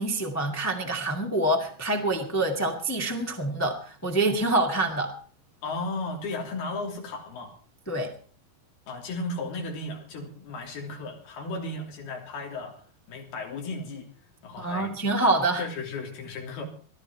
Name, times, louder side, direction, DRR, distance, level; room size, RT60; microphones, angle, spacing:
voice 1, 0.0-5.1 7.9-8.1 14.6-15.6, right 2 dB, 10° left, 2 dB, 0.9 m, -26 dB
voice 2, 5.6-7.5 8.9-12.7 13.1-14.1 14.4-14.9 15.6-16.6, left 3 dB, 85° left, 1 dB, 5.0 m, -35 dB
20.5 x 12.5 x 4.5 m, 0.41 s
omnidirectional pair, 4.3 m